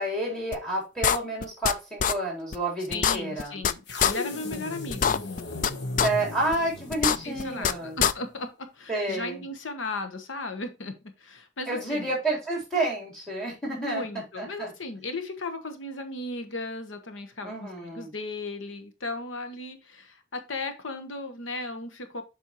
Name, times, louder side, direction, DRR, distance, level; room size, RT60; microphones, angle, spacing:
voice 1, 0.0-3.6 6.0-8.0 8.9-9.4 11.7-14.0 14.4-14.7 17.4-18.1, right 2 dB, 5° left, -2 dB, 3.6 m, -30 dB
sound 1, 0.5-0.6 1.0-1.7 2.0-2.1 2.5-2.6 2.9-3.7 4.0-4.1 4.5-4.6 4.9-5.7 6.0-6.1 6.5-6.6 6.9-7.7 8.0-8.1, left 8 dB, 45° left, 0.4 m, -23 dB
voice 2, 2.9-5.2 7.1-12.1 13.7-22.2, left 2 dB, 90° left, 7 dB, 1.1 m, -36 dB
sound 2, 3.9-8.1, left 2 dB, 60° left, 1.1 m, -37 dB
7.4 x 5.4 x 3.0 m, 0.27 s
head